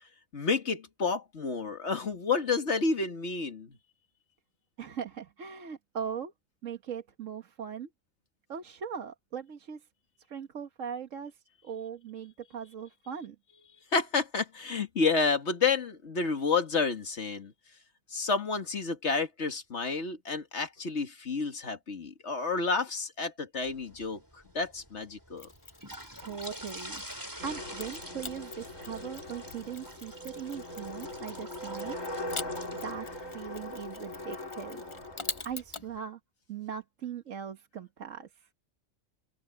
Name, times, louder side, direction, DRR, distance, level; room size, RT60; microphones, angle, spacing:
voice 1, 0.3-3.8 13.9-17.5 18.1-24.2 24.5-25.5, left 4 dB, 60° left, 2.2 m, -30 dB
voice 2, 4.8-6.3 6.6-7.9 8.5-9.9 10.3-13.4 26.2-27.0 27.4-32.0 32.8-34.8 35.4-36.2 36.5-38.5, right 7 dB, 80° right, 1.6 m, -40 dB
sound 1, 23.6-36.0, right 1 dB, 15° right, 6.3 m, -48 dB
Mechanisms, 25.4-27.3 27.8-35.9, left 3 dB, 25° left, 0.9 m, -45 dB
sound 2, 27.4-35.4, left 1 dB, 85° left, 4.9 m, -41 dB
open air
omnidirectional pair, 1.3 m